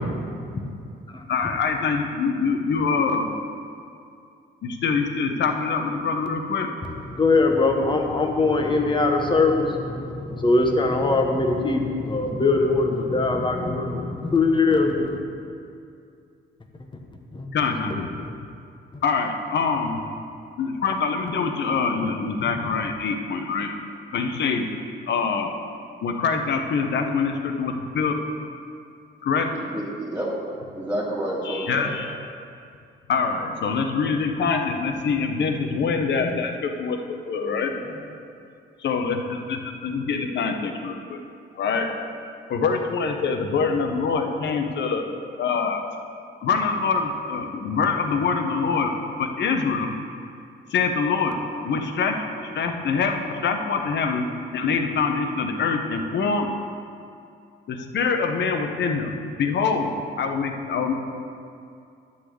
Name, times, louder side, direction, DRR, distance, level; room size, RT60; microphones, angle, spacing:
voice 1, 1.3-3.3 4.6-6.7 17.5-18.1 19.0-20.0 20.6-23.7 24.1-24.7 25.1-25.5 26.0-28.2 29.2-29.5 31.5-32.1 33.1-37.0 37.3-37.7 38.8-41.2 41.6-41.9 42.5-45.1 45.4-45.8 46.4-48.9 49.2-49.9 50.7-51.4 51.6-54.3 54.5-56.5 57.7-60.9, left 5 dB, 60° left, 4 dB, 1.0 m, -24 dB
voice 2, 7.1-15.1 17.3-17.5 18.9-19.0, left 3 dB, 25° left, 2 dB, 1.3 m, -21 dB
voice 3, 29.5-30.3 30.7-32.0 37.4-37.9, right 1 dB, 5° right, -7 dB, 2.0 m, -30 dB
11.5 x 4.1 x 7.8 m, 2.4 s
cardioid pair, 90°, 20 cm